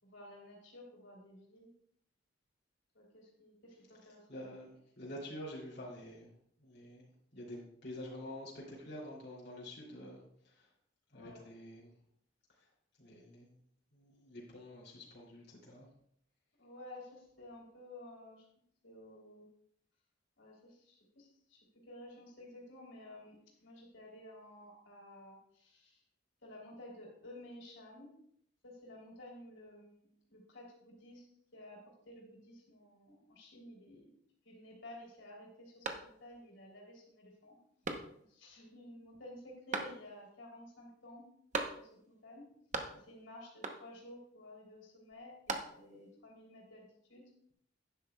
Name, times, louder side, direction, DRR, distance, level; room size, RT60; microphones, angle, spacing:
voice 1, 0.0-1.7 2.9-4.7 11.1-11.5 16.6-18.4 18.8-19.5 20.4-26.0 26.4-28.1 28.6-31.3 31.5-34.1 34.4-37.6 38.3-41.3 41.8-42.5 42.9-47.2, left 1 dB, 80° left, -2 dB, 3.2 m, -53 dB
voice 2, 4.3-6.3 6.6-10.7 11.1-11.9 12.6-12.7 13.0-13.6 13.9-15.9, left 1 dB, 60° left, -6 dB, 2.9 m, -48 dB
sound 1, 35.8-36.5 36.9-37.0 37.8-38.5 39.7-40.3 41.5-42.1 42.4-43.2 43.6-44.1 45.1-46.1, right 3 dB, 40° right, 0.9 m, -41 dB
11.5 x 10.0 x 2.3 m, 0.68 s
head